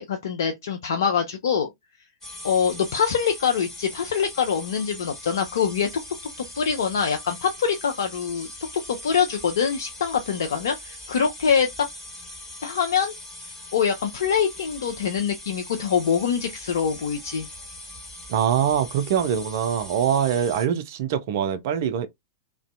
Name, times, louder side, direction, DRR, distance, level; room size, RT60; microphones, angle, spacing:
voice 1, 0.0-1.7 2.4-5.9 6.6-8.5 8.9-11.7 12.6-13.1 13.7-17.5, left 7 dB, 60° left, 0.4 m, -24 dB
sound 1, 2.2-20.7, left 1 dB, 10° left, 1.5 m, -41 dB
voice 2, 18.3-22.1, right 9 dB, 50° right, 0.4 m, -23 dB
2.5 x 2.1 x 2.4 m
figure-of-eight pair, 100°, 2 cm